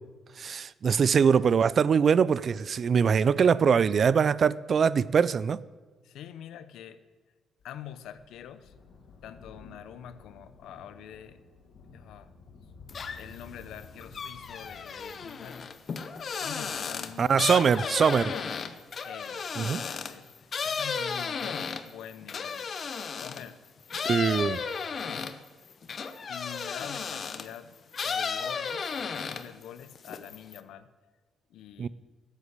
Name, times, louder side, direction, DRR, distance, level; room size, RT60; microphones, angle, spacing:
voice 1, 0.4-5.6 17.2-18.3 19.6-19.8 24.1-24.6 31.8-31.9, right 6 dB, 50° right, 0.4 m, -23 dB
voice 2, 6.0-7.0 7.6-8.7 9.2-11.4 11.9-12.3 13.2-15.7 16.4-18.0 18.3-18.7 19.0-22.7 23.1-23.6 24.0-24.5 25.0-25.5 26.3-27.8 28.0-30.9 31.5-31.9, left 9 dB, 80° left, 0.8 m, -45 dB
Thunder, 7.6-20.5 21.4-21.5, left 3 dB, 65° left, 2.2 m, -54 dB
sound 1, 12.9-13.4 13.8-23.5 23.9-27.5 27.9-29.6 29.9-30.6, left 5 dB, 45° left, 0.9 m, -34 dB
13.0 x 8.2 x 8.2 m
cardioid pair, 90°, 0 cm